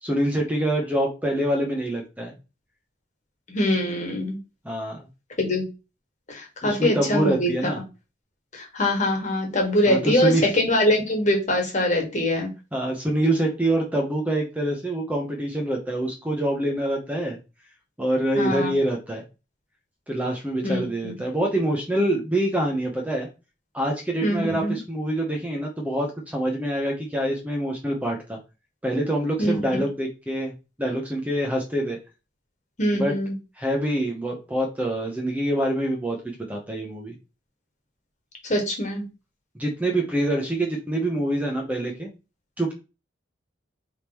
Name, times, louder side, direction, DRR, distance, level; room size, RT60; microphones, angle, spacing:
voice 1, 0.0-2.3 4.6-5.1 6.6-7.8 9.9-10.5 12.7-17.4 18.0-19.2 20.1-23.3 23.7-28.4 28.8-30.5 30.8-32.0 33.0-33.1 33.6-37.1 39.6-42.1 42.6-42.8, right 1 dB, 10° right, 1 dB, 0.8 m, -25 dB
voice 2, 3.5-4.4 5.4-5.6 6.3-7.5 8.5-12.5 18.3-18.7 20.6-21.1 24.2-24.8 29.4-29.5 32.8-33.3 38.5-39.0, left 1 dB, 40° left, 2 dB, 1.6 m, -23 dB
4.7 x 3.6 x 3.0 m, 0.28 s
head